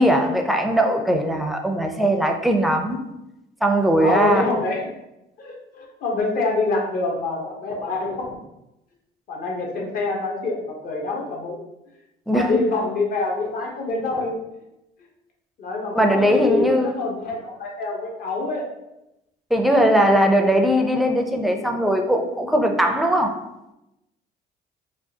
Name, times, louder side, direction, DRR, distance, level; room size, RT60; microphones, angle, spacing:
voice 1, 0.0-3.0 3.6-4.5 12.3-12.6 15.9-17.0 19.5-23.4, equal, ahead, 3 dB, 0.4 m, -19 dB
voice 2, 4.0-4.9 5.4-8.4 9.3-11.6 12.3-14.4 15.6-18.7, left 3 dB, 60° left, -1 dB, 1.0 m, -26 dB
4.8 x 2.4 x 2.7 m, 0.91 s
cardioid pair, 110°, 17 cm